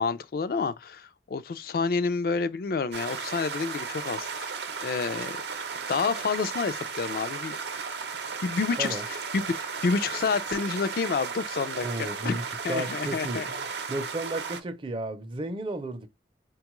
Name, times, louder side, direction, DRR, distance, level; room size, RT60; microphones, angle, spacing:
voice 1, 0.0-4.5 4.8-5.4 5.9-7.6 7.9-8.0 8.4-12.4 12.6-13.5, left 4 dB, 55° left, 0.3 m, -29 dB
sound 1, 2.9-14.6, right 5 dB, 80° right, 0.7 m, -35 dB
voice 2, 11.8-16.1, right 2 dB, 30° right, 0.5 m, -34 dB
4.4 x 2.3 x 2.9 m
head